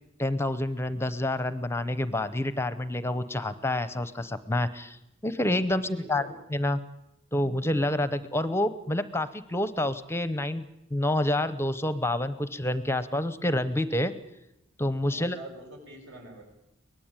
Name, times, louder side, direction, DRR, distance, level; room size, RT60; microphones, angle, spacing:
voice 1, 0.2-6.2 6.5-6.8 7.3-14.1 14.8-15.4, left 1 dB, 10° left, 13 dB, 0.8 m, -28 dB
voice 2, 5.6-6.4 15.0-16.4, right 1 dB, 60° right, 2 dB, 7.7 m, -45 dB
23.5 x 19.0 x 9.0 m, 0.86 s
head